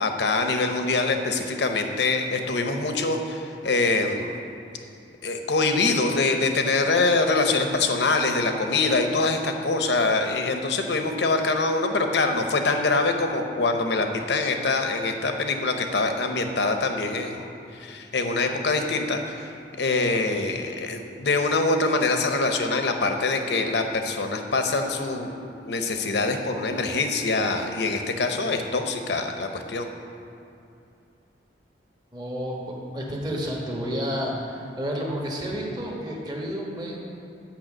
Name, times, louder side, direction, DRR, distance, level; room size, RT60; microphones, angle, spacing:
voice 1, 0.0-4.4 5.2-17.5 17.8-19.5 19.8-29.9, left 3 dB, 70° left, 5 dB, 0.9 m, -24 dB
voice 2, 32.1-37.1, equal, 25° right, -3 dB, 1.3 m, -31 dB
9.1 x 5.7 x 7.4 m, 2.7 s
head